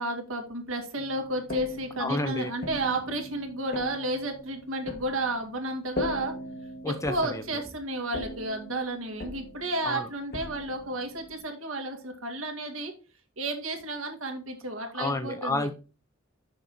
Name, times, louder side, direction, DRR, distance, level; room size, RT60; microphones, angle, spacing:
voice 1, 0.0-6.3 6.9-12.9 13.4-15.7, right 1 dB, 75° right, 2.1 m, -32 dB
sound 1, 1.0-11.4, left 1 dB, 50° left, 1.3 m, -40 dB
voice 2, 2.0-2.5 6.8-7.6 9.8-10.1 14.9-15.7, left 2 dB, 15° left, 0.6 m, -30 dB
6.6 x 6.0 x 4.0 m
head